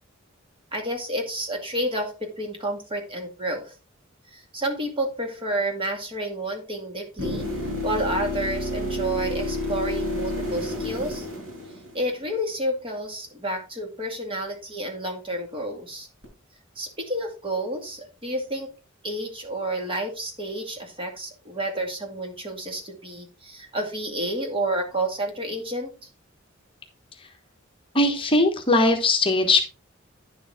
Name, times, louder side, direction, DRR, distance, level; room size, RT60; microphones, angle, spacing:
voice 1, 0.7-3.7 4.3-7.5 7.8-11.3 11.9-16.1 16.8-18.7 19.0-25.9, right 1 dB, 25° right, 3 dB, 2.3 m, -30 dB
sound 1, 7.2-12.2 16.2-16.3, left 1 dB, 90° right, 6.3 m, -30 dB
voice 2, 27.9-29.6, left 2 dB, 25° left, 4 dB, 1.3 m, -20 dB
10.0 x 7.2 x 3.6 m, 0.32 s
head